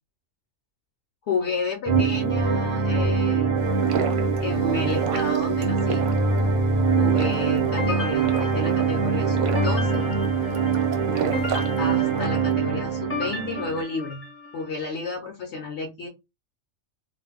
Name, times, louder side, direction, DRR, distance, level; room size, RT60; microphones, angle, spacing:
voice 1, 1.3-3.6 4.4-6.0 6.9-10.0 11.8-14.3 14.5-16.1, left 4 dB, 65° left, 1 dB, 0.9 m, -31 dB
sound 1, 1.9-13.8, right 5 dB, 30° right, 0.6 m, -23 dB
sound 2, 3.6-12.4, right 6 dB, 75° right, 0.9 m, -34 dB
sound 3, 7.8-14.7, left 2 dB, 15° left, 0.4 m, -35 dB
2.4 x 2.1 x 3.4 m, 0.23 s
omnidirectional pair, 1.3 m